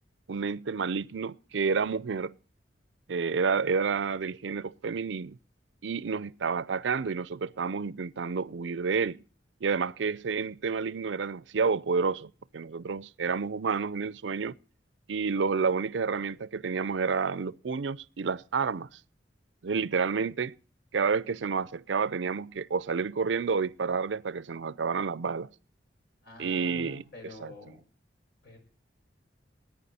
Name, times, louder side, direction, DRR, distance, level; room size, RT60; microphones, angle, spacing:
voice 1, 0.3-2.4 3.1-5.4 5.8-9.2 9.6-14.5 15.1-18.9 19.6-20.6 20.9-25.5 26.4-27.0 27.4-27.5, right 5 dB, 75° right, 0.5 m, -29 dB
voice 2, 26.2-27.8 28.4-28.6, left 2 dB, 65° left, 6.0 m, -47 dB
19.5 x 9.3 x 4.2 m
head